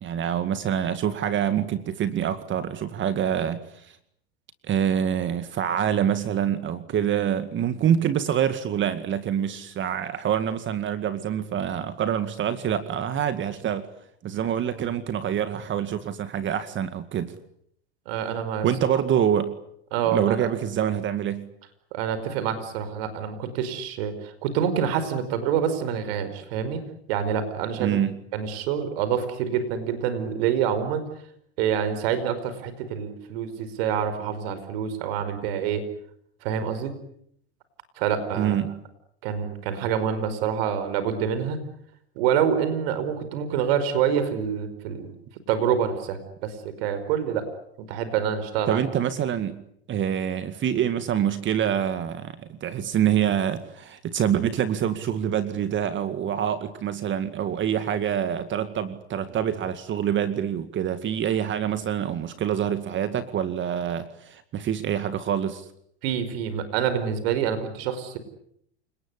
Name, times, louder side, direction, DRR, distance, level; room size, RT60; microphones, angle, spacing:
voice 1, 0.0-3.9 4.7-13.9 14.2-17.3 18.6-19.6 20.1-21.5 27.8-28.2 38.4-38.8 48.7-49.6 49.9-65.7, right 9 dB, 35° right, 11 dB, 2.1 m, -26 dB
voice 2, 18.1-18.7 19.9-20.5 21.9-26.8 27.1-28.0 28.3-31.0 31.6-35.8 36.4-36.9 38.0-38.6 39.2-41.6 42.2-45.1 45.5-47.5 47.8-48.8 66.0-68.2, right 8 dB, 70° right, 11 dB, 5.1 m, -26 dB
29.0 x 19.5 x 9.9 m, 0.72 s
hypercardioid pair, 105°, 31 cm